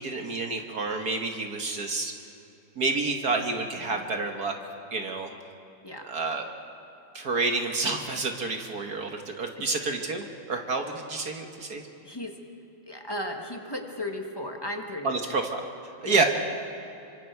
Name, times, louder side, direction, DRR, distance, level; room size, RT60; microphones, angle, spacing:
voice 1, 0.0-2.1 2.7-4.5 4.9-5.3 6.1-6.4 7.1-11.8 15.0-15.7 16.0-16.2, right 3 dB, 50° right, 3 dB, 1.7 m, -29 dB
voice 2, 12.0-12.4 12.9-15.4 16.0-16.2, left 1 dB, 15° left, 2 dB, 1.4 m, -36 dB
26.5 x 25.0 x 4.6 m, 2.8 s
omnidirectional pair, 2.4 m